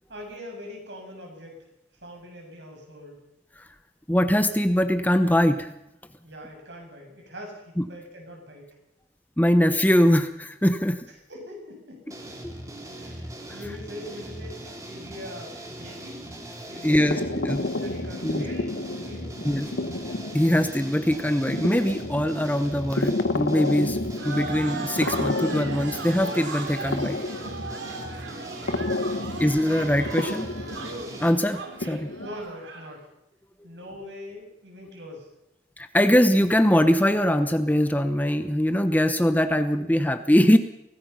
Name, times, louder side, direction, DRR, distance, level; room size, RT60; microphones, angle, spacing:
voice 1, 0.1-1.6 2.0-3.2 6.2-8.7 11.1-16.2 16.7-17.4 17.8-19.8 28.0-28.5 32.2-33.1 33.6-35.3, left 1 dB, 70° right, 1 dB, 7.7 m, -43 dB
voice 2, 4.1-5.7 7.8-7.9 9.4-11.1 16.8-17.6 18.2-18.4 19.4-19.7 20.3-27.2 29.4-30.5 31.2-32.1 35.8-40.6, equal, 10° left, 9 dB, 0.9 m, -22 dB
sound 1, 12.1-31.3, right 1 dB, 15° right, 3.0 m, -40 dB
sound 2, 16.9-32.3, left 2 dB, 80° left, 1.2 m, -32 dB
sound 3, 24.2-32.9, right 3 dB, 85° right, 4.0 m, -37 dB
25.0 x 18.5 x 5.7 m, 0.86 s
head